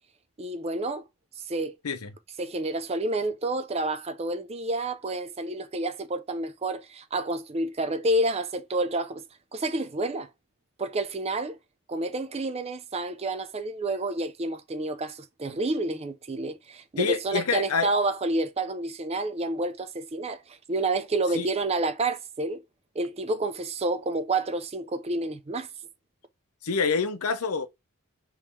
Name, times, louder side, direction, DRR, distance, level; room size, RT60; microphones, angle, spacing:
voice 1, 0.4-1.0 1.5-1.7 2.4-9.2 9.5-10.3 10.8-11.6 11.9-22.6 22.9-25.7, right 2 dB, 30° right, 0.5 m, -29 dB
voice 2, 17.0-17.9 21.3-21.5 26.6-27.7, left 5 dB, 85° left, 0.7 m, -27 dB
3.6 x 3.1 x 4.3 m
head